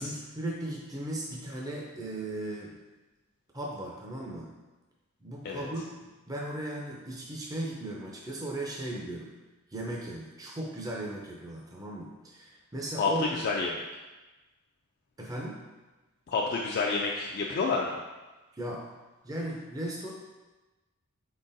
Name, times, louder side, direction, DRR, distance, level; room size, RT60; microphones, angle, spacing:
voice 1, 0.0-2.8 3.5-4.5 5.2-5.9 6.3-9.3 9.7-13.2 15.2-15.6 18.5-18.8 19.2-20.1, right 1 dB, 15° right, -3 dB, 0.5 m, -37 dB
voice 2, 13.0-13.8 16.3-18.0, left 4 dB, 45° left, -2 dB, 0.3 m, -29 dB
4.3 x 3.9 x 2.6 m, 1.2 s
head